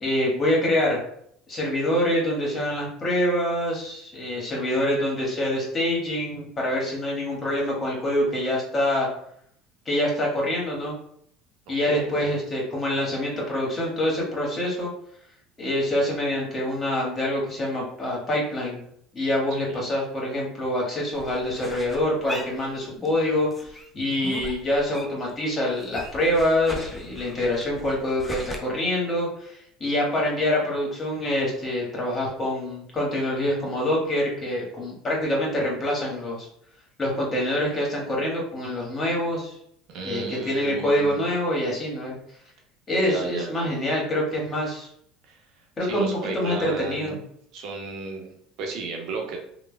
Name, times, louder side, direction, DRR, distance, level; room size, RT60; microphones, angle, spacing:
voice 1, 0.0-1.0 1.5-9.1 9.8-10.9 11.7-14.9 15.6-18.8 19.1-36.5 37.0-39.5 40.0-42.2 42.9-44.9 45.8-46.1 46.3-47.2, left 1 dB, 30° left, -2 dB, 1.4 m, -25 dB
voice 2, 11.7-12.3 19.7-19.9 39.9-41.2 42.9-43.7 45.2-45.4 45.8-47.1 47.5-48.3 48.6-49.4, right 4 dB, 65° right, 2 dB, 0.7 m, -34 dB
sound 1, 21.1-23.2 23.5-25.3 25.6-28.6, left 1 dB, 15° left, 0.6 m, -39 dB
3.2 x 2.2 x 2.2 m, 0.68 s
hypercardioid pair, 80°, 0 cm